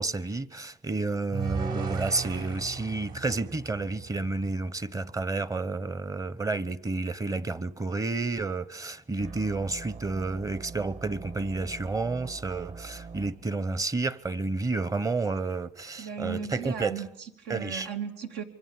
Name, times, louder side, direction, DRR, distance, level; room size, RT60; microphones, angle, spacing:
voice 1, 0.0-17.0 17.5-17.9, right 3 dB, 20° right, 0.9 m, -30 dB
sound 1, 1.3-4.5, right 6 dB, 60° right, 7.5 m, -36 dB
sound 2, 9.2-13.3, right 4 dB, 40° right, 1.6 m, -43 dB
voice 2, 16.0-18.4, right 6 dB, 85° right, 3.0 m, -36 dB
26.0 x 24.0 x 7.4 m
cardioid pair, 110°, 17 cm